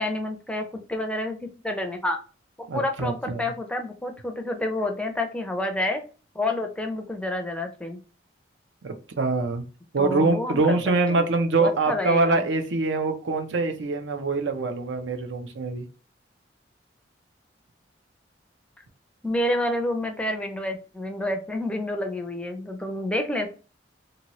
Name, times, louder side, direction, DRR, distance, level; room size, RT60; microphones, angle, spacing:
voice 1, 0.0-1.4 1.6-2.2 2.6-6.0 6.3-8.0 10.0-10.8 11.1-11.3 11.6-12.4 19.2-23.5, left 1 dB, 5° left, 4 dB, 0.4 m, -29 dB
voice 2, 2.7-3.5 8.8-9.6 9.9-15.8, right 3 dB, 80° right, 6 dB, 0.6 m, -24 dB
2.8 x 2.7 x 2.9 m, 0.35 s
head